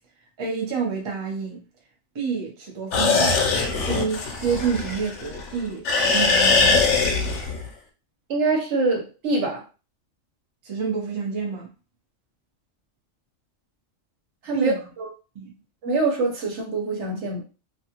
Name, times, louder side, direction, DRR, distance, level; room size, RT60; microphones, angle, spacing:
voice 1, 0.4-1.6 2.1-7.2 10.6-11.7 14.5-14.8 15.3-15.5, right 6 dB, 30° right, 0.6 m, -29 dB
sound 1, 2.9-5.5 5.9-7.7, left 4 dB, 65° left, 0.9 m, -21 dB
voice 2, 8.3-9.6 14.4-15.1 15.8-17.4, right 3 dB, 65° right, 1.1 m, -24 dB
2.5 x 2.3 x 2.8 m
omnidirectional pair, 1.3 m